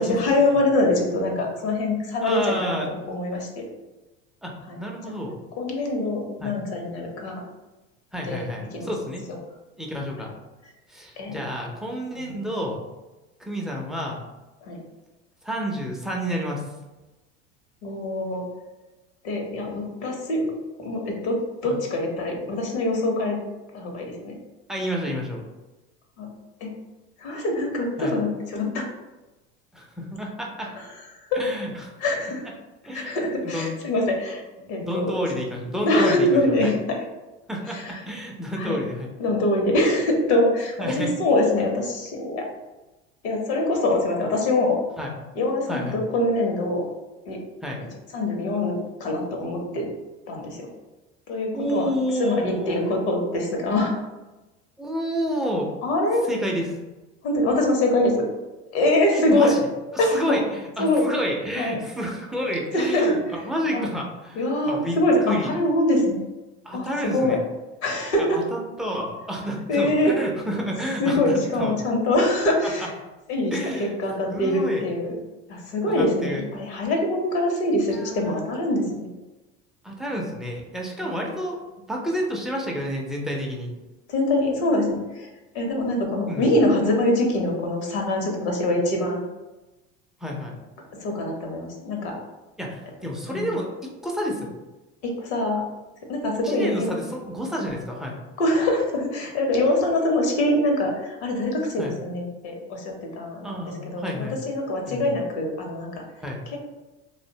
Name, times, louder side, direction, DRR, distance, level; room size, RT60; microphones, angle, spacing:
voice 1, 0.0-3.6 4.7-4.8 5.6-7.4 8.3-8.5 8.7-8.9 9.3-9.4 11.2-11.4 12.1-12.5 14.6-14.8 17.8-18.4 19.2-20.5 20.8-23.4 23.7-24.3 26.2-26.3 26.6-26.7 27.2-28.9 30.7-30.9 31.1-31.4 32.0-32.5 32.9-34.4 34.7-35.1 35.8-37.0 37.7-38.0 38.6-38.8 39.2-42.5 43.2-44.8 45.3-46.8 47.3-47.4 48.1-49.9 50.3-50.7 51.3-54.0 55.8-56.3 57.2-58.1 58.7-59.5 60.0-60.4 60.8-61.1 61.6-61.8 62.7-63.1 63.7-63.8 64.3-66.2 66.7-67.4 67.8-68.4 69.7-70.2 71.0-72.9 73.3-75.1 75.5-79.1 81.0-81.3 84.1-85.3 85.5-89.3 91.0-92.2 93.3-93.6 95.0-95.6 96.1-97.0 98.4-106.0 106.5-106.6, left 1 dB, 75° left, 1 dB, 0.8 m, -24 dB
voice 2, 2.2-2.9 4.4-5.4 6.4-6.6 8.1-9.2 9.8-10.3 10.9-12.8 13.4-14.2 15.4-16.6 21.6-21.8 24.7-25.4 28.0-28.2 29.7-30.7 31.4-31.9 32.8-33.2 33.4-33.7 34.6-36.2 36.6-36.7 37.5-39.1 40.8-41.1 45.0-45.1 45.7-46.0 47.6-47.8 51.5-52.8 54.8-55.7 56.3-56.7 59.1-59.6 60.1-60.4 60.8-64.4 64.6-65.0 65.2-65.5 66.7-67.4 68.2-71.7 73.5-73.9 74.3-74.8 76.0-76.4 77.9-78.4 79.8-81.6 81.9-83.7 86.2-86.5 90.2-90.6 92.6-94.5 96.4-98.2 101.8-101.9 103.4-104.4 104.9-105.1 106.2-106.4, equal, ahead, -1 dB, 0.3 m, -29 dB
2.5 x 2.1 x 2.6 m, 1.1 s
supercardioid pair, 95°, 34 cm